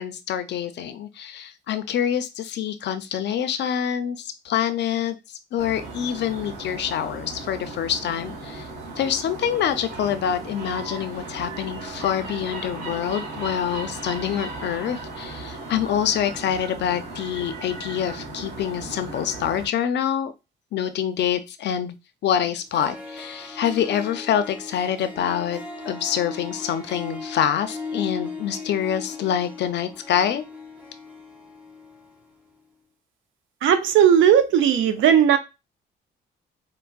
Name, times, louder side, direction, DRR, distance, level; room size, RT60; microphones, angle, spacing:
voice 1, 0.0-5.2 5.5-8.7 9.0-20.3 20.7-22.0 22.2-30.4, left 9 dB, 60° left, 10 dB, 0.5 m, -26 dB
sound 1, 5.6-19.7, right 2 dB, 50° right, 1.4 m, -36 dB
Harp, 22.4-22.5 22.7-32.2, left 4 dB, 5° right, 0.8 m, -37 dB
voice 2, 33.6-35.4, right 9 dB, 75° right, 9 dB, 0.4 m, -16 dB
4.5 x 2.1 x 2.3 m, 0.26 s
cardioid pair, 90°, 20 cm